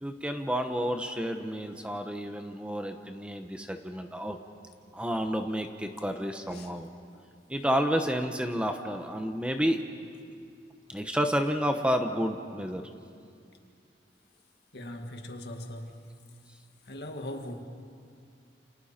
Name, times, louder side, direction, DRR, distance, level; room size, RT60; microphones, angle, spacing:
voice 1, 0.0-4.4 4.9-6.9 7.5-9.8 10.9-12.8, equal, 5° right, 5 dB, 1.0 m, -30 dB
voice 2, 14.7-16.1 16.8-17.6, left 1 dB, 65° left, 4 dB, 1.9 m, -40 dB
29.5 x 28.5 x 4.4 m, 2.4 s
head